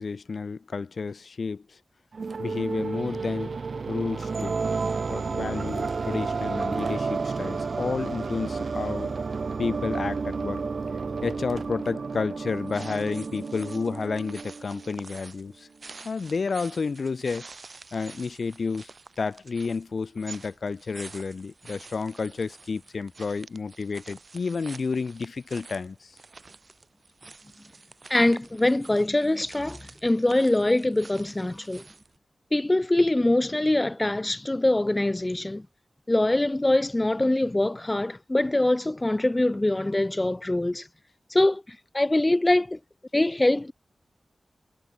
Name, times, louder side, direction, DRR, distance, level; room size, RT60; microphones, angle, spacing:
voice 1, 0.0-1.6 2.4-3.6 3.9-4.6 5.1-9.1 9.6-10.6 11.2-15.7 16.0-17.5 17.9-18.9 19.2-26.1, left 4 dB, 70° left, 1.0 m, -31 dB
sound 1, 2.1-15.1, right 4 dB, 65° right, 0.7 m, -31 dB
sound 2, 12.5-32.2, right 3 dB, 50° right, 5.9 m, -48 dB
voice 2, 28.1-31.8 32.5-35.6 36.1-40.9 41.3-42.8 43.1-43.7, left 1 dB, 20° left, 0.5 m, -23 dB
wide cardioid pair, 95°, 0 cm